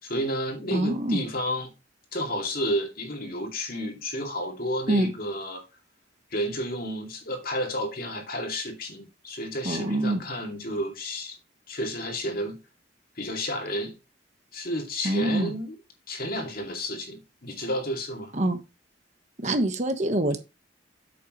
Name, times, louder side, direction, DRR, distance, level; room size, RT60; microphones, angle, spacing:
voice 1, 0.0-1.7 2.1-5.6 6.3-11.4 11.7-12.6 13.2-13.9 14.5-15.7 16.1-18.3, equal, 50° left, 2.4 m, -31 dB
voice 2, 0.7-1.2 4.9-5.1 9.6-10.2 15.0-15.5 18.3-18.6 19.4-20.4, right 1 dB, 40° right, 1.2 m, -25 dB
8.3 x 7.6 x 3.1 m
head